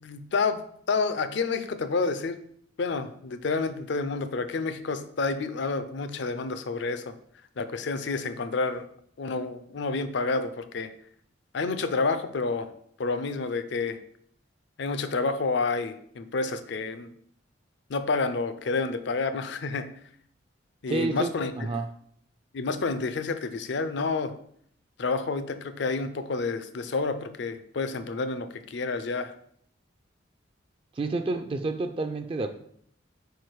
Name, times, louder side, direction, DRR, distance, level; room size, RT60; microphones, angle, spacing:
voice 1, 0.0-2.4 2.8-7.1 7.6-8.9 9.2-10.9 11.5-12.7 13.0-14.0 14.8-17.1 17.9-19.9 20.8-21.5 22.5-24.3 25.0-29.3, left 4 dB, 65° left, 11 dB, 0.5 m, -29 dB
voice 2, 20.9-21.9 31.0-32.5, right 3 dB, 30° right, 8 dB, 0.3 m, -29 dB
4.9 x 4.6 x 4.6 m, 0.65 s
head